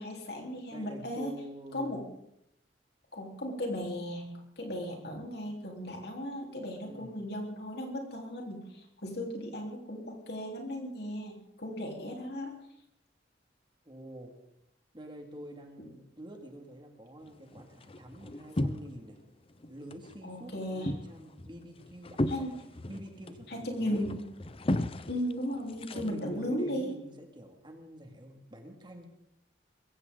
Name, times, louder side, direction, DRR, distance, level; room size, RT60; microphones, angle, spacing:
voice 1, 0.0-1.3 1.7-2.0 3.1-12.5 15.8-15.9 20.2-20.9 22.3-22.5 23.5-24.2 25.1-26.9, equal, 60° left, 1 dB, 4.1 m, -36 dB
voice 2, 0.7-2.1 6.8-7.2 13.8-14.4 14.9-19.2 19.7-22.5 22.9-24.1 25.9-29.1, right 1 dB, 25° right, 3 dB, 2.4 m, -47 dB
sound 1, 17.2-19.2 19.5-20.2 20.5-26.5, left 1 dB, 30° left, 0.7 m, -36 dB
21.5 x 16.5 x 4.0 m, 0.78 s
head